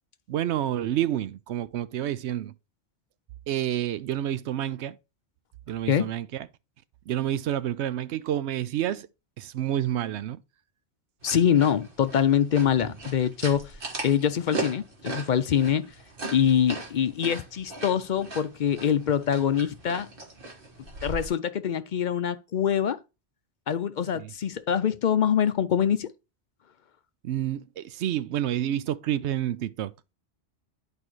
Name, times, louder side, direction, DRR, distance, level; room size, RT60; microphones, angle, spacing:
voice 1, 0.3-2.5 3.5-5.0 5.7-6.5 7.1-9.1 9.4-10.4 24.1-24.3 27.2-29.9, right 11 dB, 80° right, 0.9 m, -29 dB
voice 2, 11.2-13.7 14.0-15.9 16.3-20.1 21.0-23.0 23.7-26.1, left 8 dB, 55° left, 0.6 m, -24 dB
sound 1, 11.2-21.3, right 2 dB, 55° right, 1.8 m, -38 dB
11.0 x 4.8 x 3.1 m
omnidirectional pair, 1.1 m